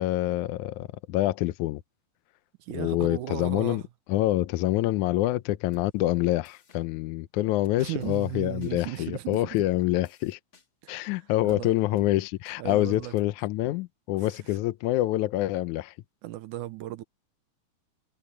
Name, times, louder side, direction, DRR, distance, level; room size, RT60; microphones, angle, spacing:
voice 1, 0.0-1.8 2.7-3.8 4.1-10.4 10.9-15.9, left 16 dB, 80° left, 1.8 m, -26 dB
voice 2, 2.6-3.8 7.8-9.6 10.8-11.2 11.4-11.7 12.6-13.1 16.2-17.0, right 16 dB, 75° right, 2.0 m, -36 dB
sound 1, 5.7-5.9 6.5-6.8 7.7-8.2 8.6-8.7 9.3-9.7 10.1-10.7 11.5-11.6 12.0-12.1 12.5-12.6 12.9-13.2, left 3 dB, 35° left, 2.9 m, -53 dB
omnidirectional pair, 4.0 m